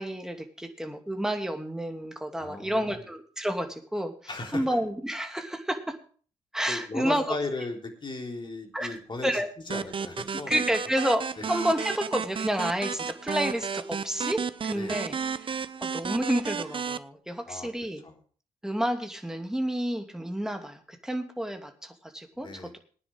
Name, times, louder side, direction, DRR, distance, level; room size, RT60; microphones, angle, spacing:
voice 1, 0.0-6.0 6.5-7.3 8.7-9.5 10.5-15.6 15.8-18.0 18.6-22.8, equal, 5° right, 5 dB, 2.6 m, -30 dB
voice 2, 2.4-3.0 4.3-4.6 6.7-9.4 9.7-10.6 11.4-11.5 14.7-15.0 17.5-17.7 18.0-18.2 22.4-22.8, left 3 dB, 30° left, 2 dB, 3.7 m, -36 dB
sound 1, 9.7-17.0, right 6 dB, 35° right, 0.8 m, -33 dB
19.5 x 9.9 x 3.6 m, 0.42 s
hypercardioid pair, 45°, 15 cm